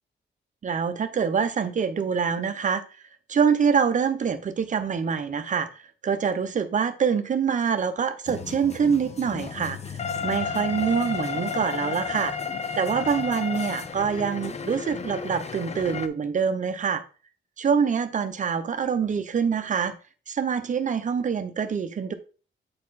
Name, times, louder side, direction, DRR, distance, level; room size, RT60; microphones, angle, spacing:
voice 1, 0.6-2.8 3.3-12.3 12.8-17.0 17.6-19.9 20.3-22.1, right 6 dB, 40° right, 0.8 m, -25 dB
sound 1, 8.3-16.1, left 6 dB, 35° left, 0.6 m, -32 dB
8.6 x 4.2 x 4.1 m
wide cardioid pair, 150°, 20 cm